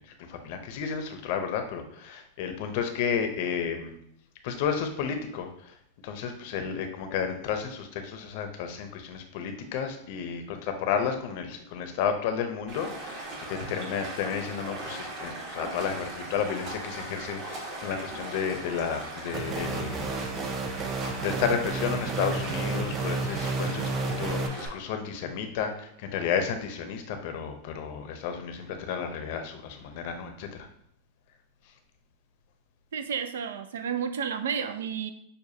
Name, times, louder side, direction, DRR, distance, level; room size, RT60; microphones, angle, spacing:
voice 1, 0.0-4.0 4.4-5.7 6.0-20.2 21.2-30.7, left 7 dB, 55° left, 6 dB, 0.6 m, -32 dB
Stream, 12.7-24.7, right 2 dB, 45° right, 1.2 m, -39 dB
sound 1, 19.3-24.5, right 3 dB, 30° right, 0.5 m, -31 dB
voice 2, 32.9-35.1, right 7 dB, 90° right, 9 dB, 0.4 m, -31 dB
6.4 x 2.3 x 2.8 m, 0.70 s
supercardioid pair, 140°, 0 cm